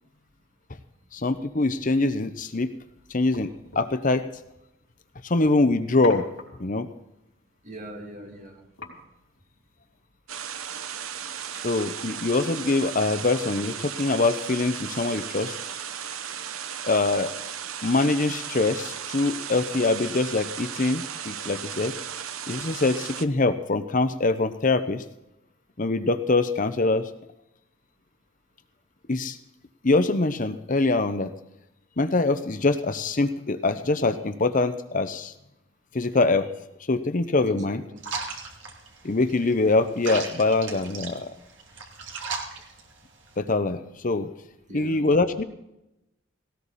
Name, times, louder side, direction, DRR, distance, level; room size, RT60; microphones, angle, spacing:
voice 1, 1.1-2.7 3.1-4.3 5.2-6.3 6.6-6.9 11.6-15.6 16.8-17.3 17.8-21.9 22.5-25.0 25.8-27.1 29.1-29.4 29.8-31.3 32.0-35.3 35.9-36.5 36.9-37.8 39.0-41.3 43.4-44.3 44.7-45.4, left 3 dB, 40° left, 10 dB, 0.8 m, -24 dB
sound 1, 2.3-10.0, left 3 dB, 85° left, 4.5 m, -46 dB
voice 2, 7.6-8.7 37.5-38.0 44.7-45.1, right 1 dB, 35° right, 2 dB, 2.8 m, -42 dB
sound 2, 10.3-23.3, right 8 dB, 85° right, 1.0 m, -35 dB
sound 3, 38.0-43.4, right 4 dB, 60° right, 2.9 m, -37 dB
18.0 x 18.0 x 4.2 m, 0.89 s
head